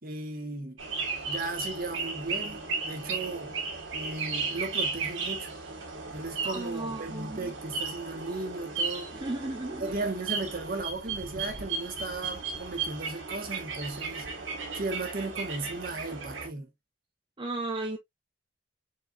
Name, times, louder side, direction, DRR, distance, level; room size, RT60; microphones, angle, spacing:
voice 1, 0.0-0.8 1.2-3.5 3.9-5.5 6.1-9.1 9.8-14.3 14.7-16.7, right 2 dB, 50° right, 1.4 m, -36 dB
sound 1, 0.8-16.5, right 4 dB, 85° right, 1.7 m, -35 dB
voice 2, 6.4-7.5 9.2-9.9 17.4-18.0, right 2 dB, 25° right, 0.7 m, -35 dB
4.5 x 4.4 x 2.4 m
head